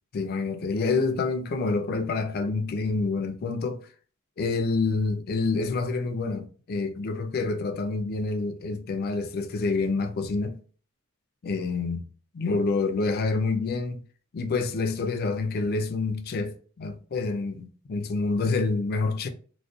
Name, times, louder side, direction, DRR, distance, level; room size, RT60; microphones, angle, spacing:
voice 1, 0.1-3.8 4.4-10.6 11.4-12.0 12.3-14.0 14.3-19.3, left 3 dB, 45° left, 0.3 m, -27 dB
2.3 x 2.1 x 2.5 m
head